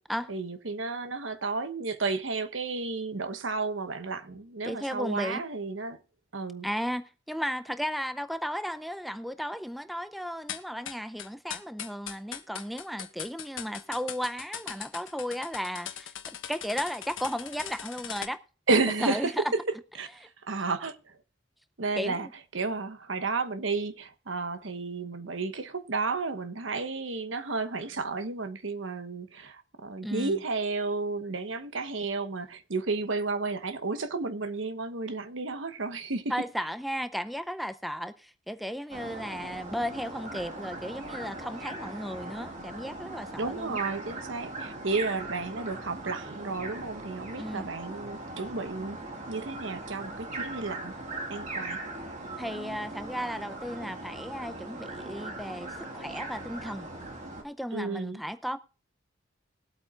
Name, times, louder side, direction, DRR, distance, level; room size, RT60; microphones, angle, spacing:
voice 1, 0.3-6.0 6.3-6.7 18.7-19.6 20.0-20.1 20.5-21.1 21.8-22.3 22.5-36.3 43.4-49.0 49.3-50.9 51.3-51.8 57.7-58.2, right 3 dB, 80° right, 1.1 m, -32 dB
voice 2, 4.6-5.4 6.6-16.1 16.5-18.4 19.0-19.4 22.0-22.3 30.0-30.4 36.3-43.8 47.4-47.6 52.4-56.9 57.4-58.6, equal, ahead, 0.5 m, -35 dB
sound 1, 10.5-18.3, left 9 dB, 90° left, 1.3 m, -39 dB
sound 2, 38.9-57.4, right 2 dB, 40° right, 2.2 m, -40 dB
21.0 x 8.2 x 2.4 m
head